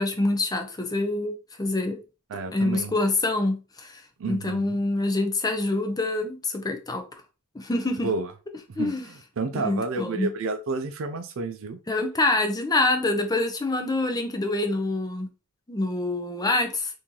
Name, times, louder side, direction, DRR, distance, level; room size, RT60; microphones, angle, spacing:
voice 1, 0.0-2.0 2.5-4.0 4.3-7.0 7.5-8.1 8.8-9.0 9.5-10.3 11.9-15.3 15.7-16.9, left 2 dB, 20° left, 0.6 m, -26 dB
voice 2, 2.3-3.0 4.2-4.8 8.0-8.3 8.7-11.8, right 3 dB, 70° right, 0.4 m, -31 dB
3.0 x 2.7 x 3.7 m
head